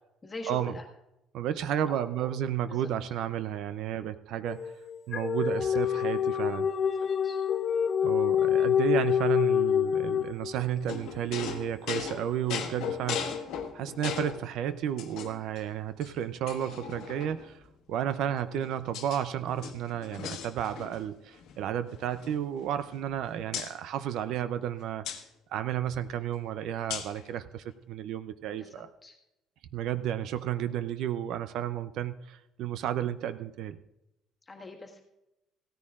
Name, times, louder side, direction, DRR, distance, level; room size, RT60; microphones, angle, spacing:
voice 1, 0.2-0.9 1.9-2.3 2.6-2.9 5.9-6.1 7.2-7.4 28.6-28.7 29.0-29.1 34.5-35.0, left 2 dB, 15° left, 1 dB, 1.6 m, -42 dB
voice 2, 1.3-4.7 5.1-6.7 8.0-13.4 13.7-17.6 17.9-25.1 25.5-28.9 29.7-33.8, right 10 dB, 60° right, 12 dB, 0.5 m, -32 dB
sound 1, 4.5-10.8, left 9 dB, 30° left, 0.5 m, -26 dB
sound 2, 10.9-14.4 15.0-15.6 16.0-16.1 16.5-17.5 18.3-19.2 19.5-21.1 21.3-21.5 21.9-23.1 23.5-23.7 25.0-25.2 26.9-27.2, left 8 dB, 65° left, 1.3 m, -37 dB
17.0 x 14.0 x 2.4 m, 0.91 s
cardioid pair, 175°, 0 cm